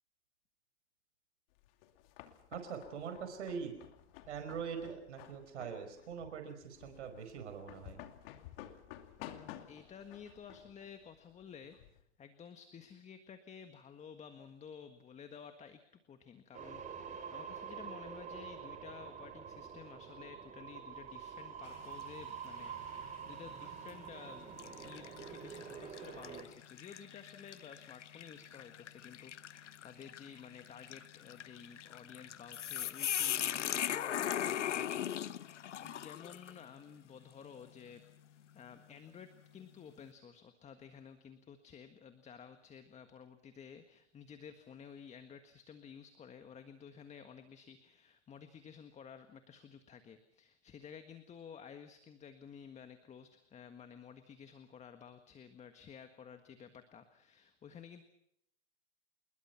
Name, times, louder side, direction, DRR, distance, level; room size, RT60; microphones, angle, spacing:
sound 1, 1.6-12.0, left 12 dB, 55° left, 2.6 m, -53 dB
voice 1, 2.5-3.7 4.3-8.0, right 6 dB, 75° right, 7 dB, 5.2 m, -43 dB
voice 2, 9.2-11.8 12.2-58.0, left 7 dB, 20° left, 8 dB, 1.6 m, -53 dB
sound 2, 16.5-26.4, right 7 dB, 20° right, 3.2 m, -47 dB
sound 3, 21.7-22.1 22.6-22.8 23.7-24.0 24.6-36.6, left 10 dB, 90° left, 0.9 m, -39 dB
27.0 x 21.5 x 5.9 m, 0.75 s
hypercardioid pair, 125°, 35 cm